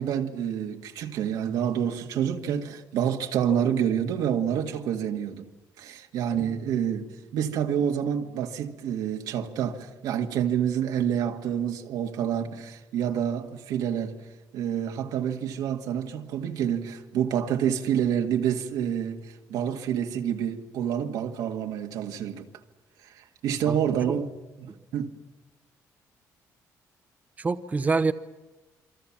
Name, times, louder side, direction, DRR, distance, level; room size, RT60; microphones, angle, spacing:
voice 1, 0.0-5.5 5.8-7.1 7.3-14.2 14.5-22.5 23.2-24.3 24.6-25.2, right 9 dB, 85° right, 2.0 m, -28 dB
voice 2, 27.4-28.1, right 4 dB, 25° right, 0.9 m, -25 dB
28.0 x 23.5 x 7.4 m
cardioid pair, 120°, 6 cm